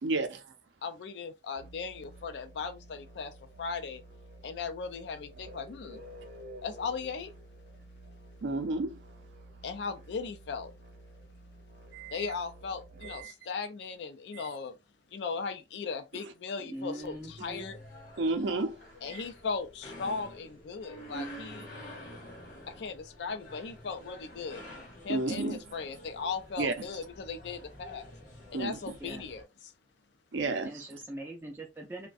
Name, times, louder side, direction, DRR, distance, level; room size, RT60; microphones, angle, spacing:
voice 1, 0.0-0.5 8.4-9.0 11.9-12.3 13.0-13.3 14.3-14.4 16.9-17.0 17.4-17.5 18.2-18.8 19.1-19.2 25.1-25.6 26.6-26.7 28.5-28.8 30.3-30.9, right 3 dB, 75° right, 0.5 m, -32 dB
voice 2, 0.8-3.3 3.6-4.0 4.4-6.0 6.6-7.3 9.6-10.7 12.1-14.8 15.1-17.8 19.0-21.7 22.7-24.6 25.0-28.1 28.5-29.7, left 5 dB, 65° left, 0.4 m, -37 dB
sound 1, 1.6-13.2, right 1 dB, 55° right, 0.8 m, -51 dB
voice 3, 16.6-17.7 29.0-29.3 30.6-32.1, right 1 dB, 10° right, 0.4 m, -42 dB
sound 2, 17.0-29.4, equal, 45° left, 0.9 m, -48 dB
2.4 x 2.1 x 2.5 m
head